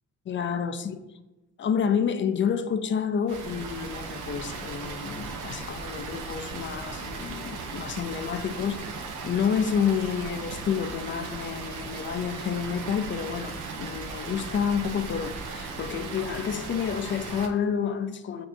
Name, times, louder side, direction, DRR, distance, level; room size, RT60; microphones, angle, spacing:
voice 1, 0.3-1.0 1.6-18.5, left 7 dB, 40° left, 0.4 m, -29 dB
Water, 3.3-17.5, right 4 dB, 85° right, 0.7 m, -37 dB
6.8 x 2.8 x 2.6 m
cardioid pair, 90°, 30 cm